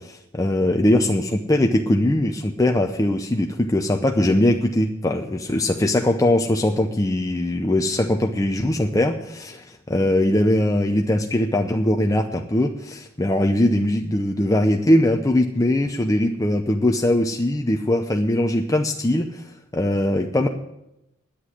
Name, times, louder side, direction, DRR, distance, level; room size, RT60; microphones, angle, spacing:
voice 1, 0.0-20.5, left 1 dB, 15° left, 3 dB, 0.6 m, -21 dB
10.0 x 8.4 x 9.6 m, 0.88 s
head